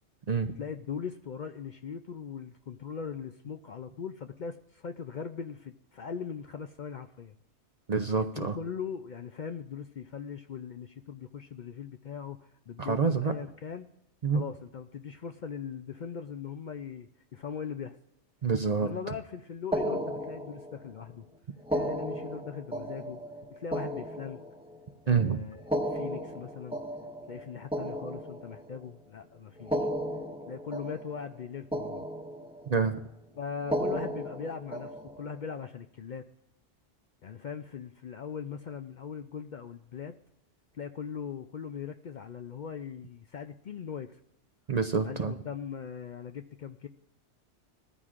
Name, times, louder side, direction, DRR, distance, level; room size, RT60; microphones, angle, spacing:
voice 1, 0.6-7.4 8.3-13.9 14.3-18.0 18.8-21.3 21.7-23.2 23.5-24.4 25.0-25.6 25.9-26.8 27.3-29.8 30.5-32.0 33.4-36.2 37.2-40.1 40.7-44.2 45.0-46.9, left 7 dB, 55° left, 7 dB, 0.5 m, -40 dB
voice 2, 7.9-8.6 12.8-13.3 14.2-14.4 18.4-18.9 25.1-25.4 32.7-33.0 44.7-45.3, right 5 dB, 45° right, 8 dB, 0.6 m, -27 dB
sound 1, 19.7-21.0 21.6-24.9 25.6-28.9 29.6-31.4 31.7-32.8 33.6-35.4, equal, 5° right, 1.1 m, -35 dB
18.5 x 13.5 x 2.5 m, 0.81 s
omnidirectional pair, 1.2 m